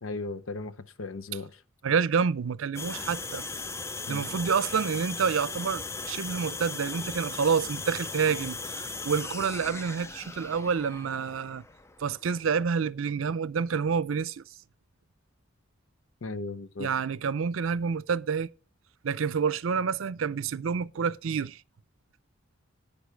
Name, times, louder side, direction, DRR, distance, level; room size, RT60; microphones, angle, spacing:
voice 1, 0.0-1.6 4.1-4.3 16.2-16.9, left 3 dB, 85° left, 0.7 m, -36 dB
voice 2, 1.8-3.4 4.1-11.6 12.0-14.4 16.8-18.5 19.0-21.6, right 6 dB, 85° right, 0.5 m, -28 dB
sound 1, 2.7-12.6, left 3 dB, 15° left, 0.4 m, -38 dB
11.5 x 8.7 x 3.4 m
head